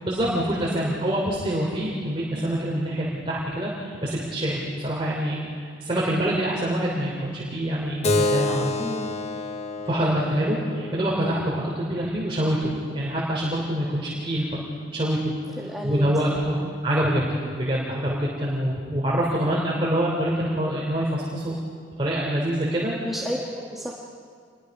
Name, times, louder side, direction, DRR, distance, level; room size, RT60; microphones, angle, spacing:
voice 1, 0.0-5.4 5.8-8.7 9.8-14.6 14.9-15.3 15.8-21.6 22.0-22.9, right 1 dB, 30° right, -4 dB, 3.1 m, -25 dB
Keyboard (musical), 8.0-13.2, left 2 dB, 35° left, 0.9 m, -29 dB
voice 2, 8.8-9.1 15.6-16.8 23.0-23.9, equal, ahead, -3 dB, 1.5 m, -33 dB
27.5 x 21.5 x 5.3 m, 2.2 s
head